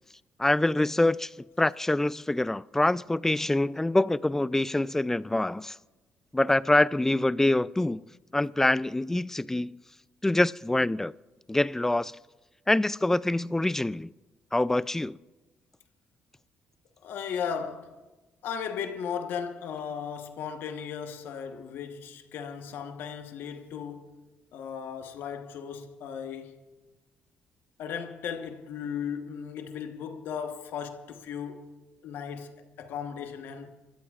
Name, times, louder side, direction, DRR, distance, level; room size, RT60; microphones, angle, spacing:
voice 1, 0.4-1.3 1.6-5.8 6.3-8.0 8.3-9.7 10.2-11.1 11.5-12.1 12.7-14.1 14.5-15.2, left 1 dB, 10° left, 0.3 m, -25 dB
voice 2, 17.0-18.0 18.4-24.2 24.5-26.6 27.8-31.8 32.0-33.7, left 7 dB, 75° left, 1.2 m, -36 dB
28.0 x 14.0 x 2.5 m
cardioid pair, 75°, 4 cm